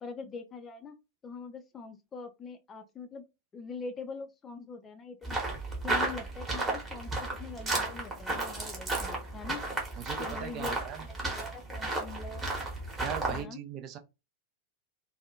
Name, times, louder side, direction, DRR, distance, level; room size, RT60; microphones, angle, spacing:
voice 1, 0.0-1.0 1.2-3.2 3.5-5.4 5.8-9.6 10.2-12.5 13.3-13.6, left 4 dB, 20° left, 0.4 m, -43 dB
sound 1, 5.2-13.4, right 2 dB, 15° right, 1.0 m, -33 dB
voice 2, 10.0-11.1 13.0-14.0, right 9 dB, 35° right, 0.5 m, -39 dB
2.5 x 2.3 x 2.6 m
figure-of-eight pair, 90°, 0 cm